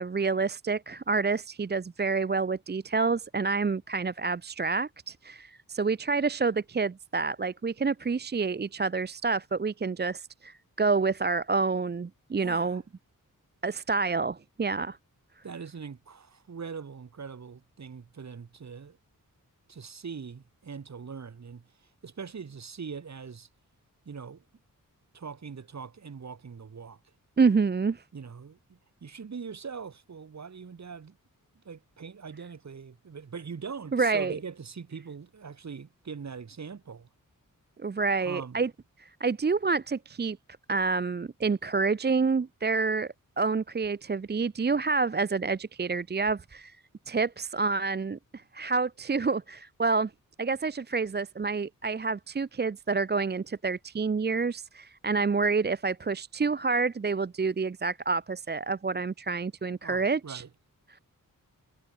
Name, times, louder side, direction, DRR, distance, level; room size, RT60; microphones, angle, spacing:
voice 1, 0.0-12.8 13.6-15.0 27.4-28.0 33.9-34.3 37.8-38.7 39.0-40.4 40.7-43.1 43.4-46.8 47.1-50.1 50.4-60.4, right 4 dB, 30° right, 0.8 m, -28 dB
voice 2, 12.4-12.8 15.4-19.0 19.7-23.5 24.1-24.4 25.1-27.0 28.1-31.2 31.6-37.1 38.2-38.6 59.8-60.5, right 6 dB, 55° right, 4.1 m, -42 dB
wide cardioid pair, 170°, 34 cm